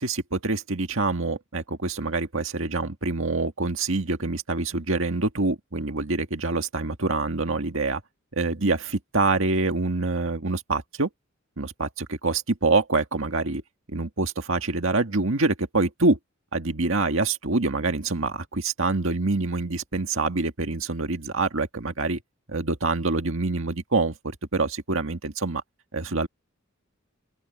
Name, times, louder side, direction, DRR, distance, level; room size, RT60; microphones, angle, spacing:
voice 1, 0.0-8.0 8.3-11.1 11.6-13.6 13.9-16.2 16.5-22.2 22.5-25.6 25.9-26.3, right 3 dB, 65° right, 1.9 m, -26 dB
open air
head